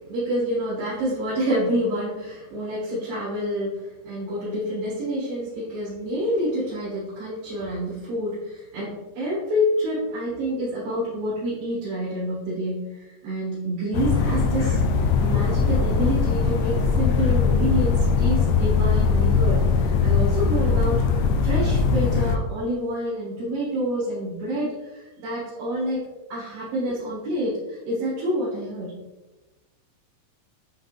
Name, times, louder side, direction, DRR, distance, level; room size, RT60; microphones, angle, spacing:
voice 1, 0.1-14.8 15.2-21.0 21.4-26.1 26.3-29.0, equal, 85° right, -9 dB, 3.7 m, -28 dB
sound 1, 13.9-22.4, left 5 dB, 80° left, 2.3 m, -21 dB
9.2 x 4.0 x 3.3 m, 1.1 s
omnidirectional pair, 3.9 m